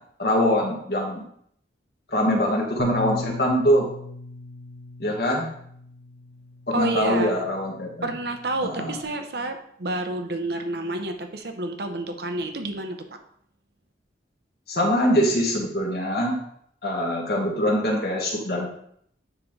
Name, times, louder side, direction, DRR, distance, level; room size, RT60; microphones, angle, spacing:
voice 1, 0.2-1.2 2.1-3.9 5.0-5.5 6.7-8.1 8.6-8.9 14.7-16.4 16.8-18.7, equal, 55° left, -1 dB, 1.6 m, -23 dB
Bass guitar, 2.8-9.0, left 2 dB, 80° left, 0.6 m, -38 dB
voice 2, 6.7-7.3 8.0-13.2, right 2 dB, 60° right, 6 dB, 0.7 m, -29 dB
9.7 x 3.7 x 3.2 m, 0.68 s
head